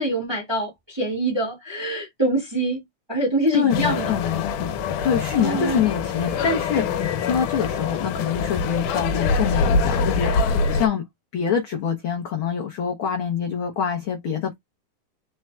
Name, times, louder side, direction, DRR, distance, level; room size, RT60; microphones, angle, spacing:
voice 1, 0.0-2.8 3.1-4.2 5.3-5.9, right 1 dB, 10° right, 1.3 m, -25 dB
voice 2, 3.5-4.7 5.0-11.0 11.3-14.6, left 8 dB, 70° left, 1.2 m, -25 dB
sound 1, 3.7-10.9, left 4 dB, 85° left, 2.5 m, -24 dB
4.6 x 4.3 x 2.3 m
omnidirectional pair, 3.6 m